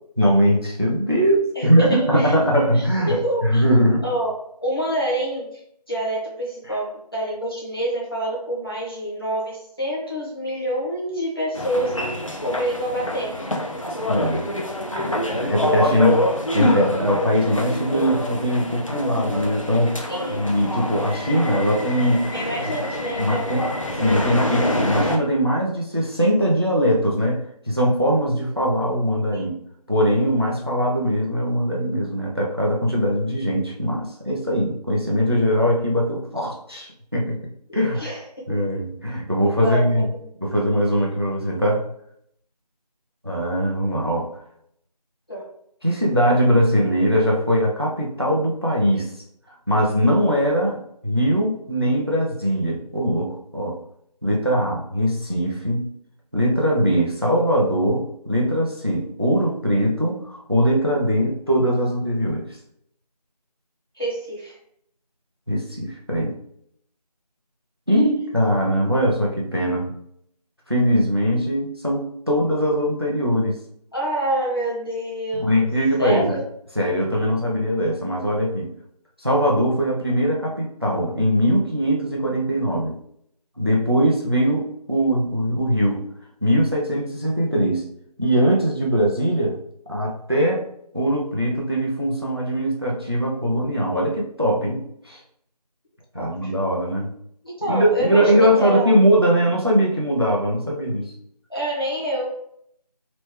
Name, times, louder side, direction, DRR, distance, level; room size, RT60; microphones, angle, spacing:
voice 1, 0.2-4.0 6.7-6.8 14.1-14.5 14.9-16.3 16.5-19.9 20.3-22.3 23.2-23.7 24.0-29.5 29.9-37.4 37.7-38.1 38.5-40.1 40.4-41.8 43.2-44.3 45.8-49.1 49.7-53.8 54.2-55.9 56.3-62.5 65.5-66.3 67.9-69.9 70.7-73.6 75.4-76.4 76.7-78.7 79.2-82.9 83.6-86.0 86.4-87.9 88.2-89.6 89.9-90.7 90.9-95.2 96.1-97.1 97.7-101.1, equal, 35° right, -1 dB, 0.6 m, -21 dB
voice 2, 1.6-2.3 2.7-3.6 4.0-4.3 4.6-5.6 5.9-12.1 12.4-13.5 20.1-20.5 22.3-23.7 29.3-29.5 37.9-38.2 39.6-40.0 45.3-45.5 64.0-64.6 73.9-75.7 76.0-76.4 96.1-96.5 97.4-99.0 101.5-102.4, right 1 dB, 35° left, -5 dB, 1.0 m, -27 dB
sound 1, 11.5-25.2, left 1 dB, 50° left, 0.5 m, -26 dB
3.3 x 3.0 x 3.2 m, 0.70 s
figure-of-eight pair, 180°, 21 cm